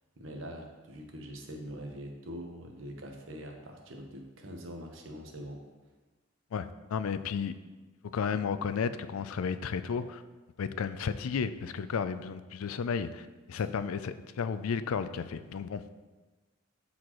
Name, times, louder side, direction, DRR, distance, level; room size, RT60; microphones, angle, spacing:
voice 1, 0.2-5.6 13.5-13.9, equal, 70° right, 2 dB, 1.1 m, -43 dB
voice 2, 6.5-7.5 8.1-10.2 10.6-15.8, left 6 dB, 90° left, 12 dB, 0.4 m, -33 dB
12.0 x 4.3 x 3.0 m, 1.3 s
head